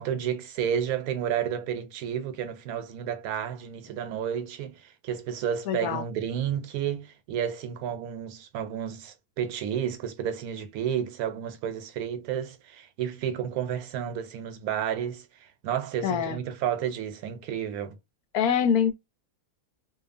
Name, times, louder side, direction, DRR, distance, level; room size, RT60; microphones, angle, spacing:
voice 1, 0.0-18.0, right 9 dB, 80° right, 1.1 m, -31 dB
voice 2, 5.7-6.0 16.0-16.4 18.3-18.9, left 8 dB, 80° left, 1.1 m, -24 dB
2.8 x 2.3 x 2.5 m
omnidirectional pair, 1.5 m